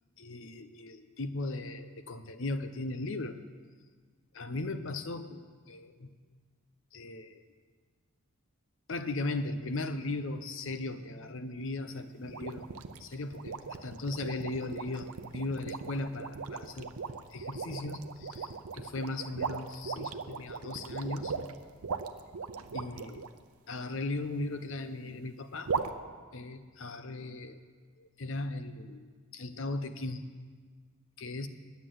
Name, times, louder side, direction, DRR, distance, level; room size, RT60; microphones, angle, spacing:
voice 1, 0.2-3.4 4.4-5.4 5.7-6.1 6.9-7.4 8.9-12.7 13.0-13.6 13.8-16.9 17.3-21.3 22.7-23.2 23.7-25.7 26.3-27.6 28.0-30.2 31.2-31.5, left 2 dB, 60° left, 10 dB, 0.7 m, -37 dB
sound 1, 10.2-17.9, equal, 20° right, 1.1 m, -62 dB
sound 2, 12.3-23.3 25.7-25.9, right 5 dB, 85° right, 0.6 m, -38 dB
9.7 x 8.3 x 7.7 m, 1.5 s
head